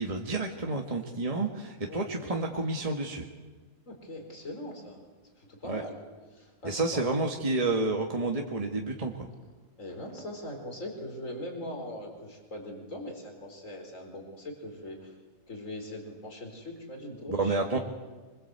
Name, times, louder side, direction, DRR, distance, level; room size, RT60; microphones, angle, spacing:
voice 1, 0.0-3.3 5.7-5.8 6.6-9.3 17.3-17.8, right 2 dB, 25° right, 2 dB, 1.7 m, -30 dB
voice 2, 1.9-2.5 3.8-5.0 5.4-6.0 6.3-7.0 9.8-15.2 15.5-17.8, left 1 dB, 65° left, 3 dB, 4.7 m, -41 dB
25.5 x 23.5 x 8.1 m, 1.3 s
omnidirectional pair, 1.5 m